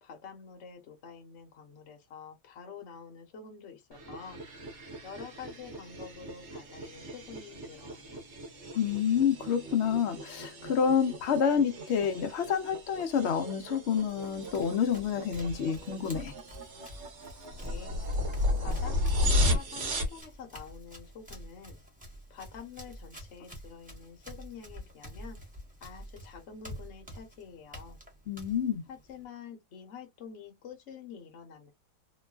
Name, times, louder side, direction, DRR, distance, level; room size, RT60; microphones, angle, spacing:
voice 1, 0.0-4.4 5.0-8.2 17.6-18.1 18.6-21.8 22.3-25.4 25.8-28.0 28.9-31.7, left 6 dB, 55° left, 0.9 m, -47 dB
sound 1, 3.9-20.2, left 1 dB, 50° right, 1.0 m, -35 dB
voice 2, 8.7-16.3 28.3-28.8, left 7 dB, 75° left, 0.6 m, -28 dB
Run, 14.0-29.2, equal, 5° right, 0.7 m, -49 dB
3.0 x 2.3 x 2.3 m
omnidirectional pair, 2.0 m